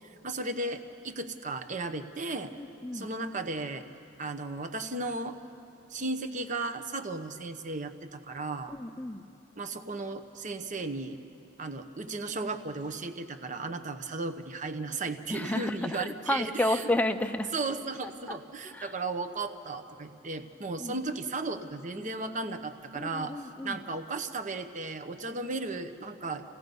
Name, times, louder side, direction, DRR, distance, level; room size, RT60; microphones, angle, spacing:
voice 1, 0.0-2.5 2.9-3.9 4.2-5.4 5.9-8.7 9.6-11.2 11.6-16.9 17.5-23.3 23.6-26.4, right 3 dB, 35° right, 7 dB, 0.9 m, -35 dB
voice 2, 2.6-3.1 8.7-9.2 15.3-17.5 18.0-18.4 18.6-18.9 20.8-21.0 22.9-23.8, left 1 dB, 10° left, 7 dB, 0.5 m, -32 dB
29.5 x 16.5 x 5.4 m, 2.8 s
head